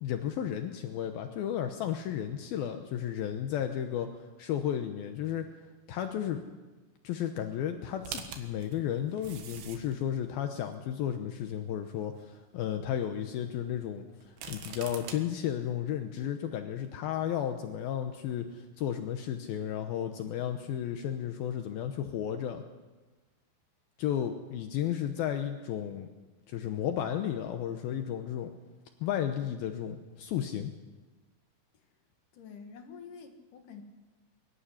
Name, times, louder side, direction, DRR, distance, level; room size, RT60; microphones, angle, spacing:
voice 1, 0.0-4.1 4.4-5.5 5.9-6.5 7.0-22.6 24.0-26.1 26.5-28.5 29.0-30.7, left 10 dB, 75° left, 6 dB, 2.6 m, -33 dB
sound 1, 8.0-10.0 10.7-10.8 14.2-15.2, right 7 dB, 80° right, 3.7 m, -42 dB
voice 2, 32.3-33.8, left 6 dB, 60° left, 5 dB, 2.9 m, -47 dB
23.0 x 12.0 x 9.9 m, 1.2 s
omnidirectional pair, 4.7 m